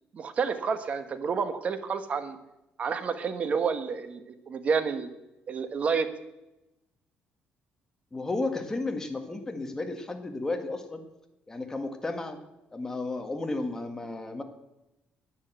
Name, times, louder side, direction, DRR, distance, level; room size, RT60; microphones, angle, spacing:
voice 1, 0.1-2.4 2.8-5.1 5.5-6.1, right 5 dB, 40° right, 9 dB, 1.3 m, -29 dB
voice 2, 8.1-11.0 11.5-12.4 12.7-14.4, left 2 dB, 15° left, 5 dB, 1.6 m, -33 dB
10.5 x 9.8 x 8.1 m, 0.93 s
cardioid pair, 145°, 4 cm